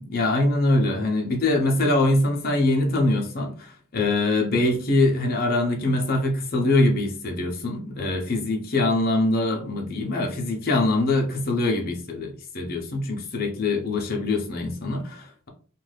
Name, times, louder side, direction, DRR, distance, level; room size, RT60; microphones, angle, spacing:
voice 1, 0.0-15.5, left 2 dB, 45° left, 0.6 m, -23 dB
2.5 x 2.3 x 3.2 m
head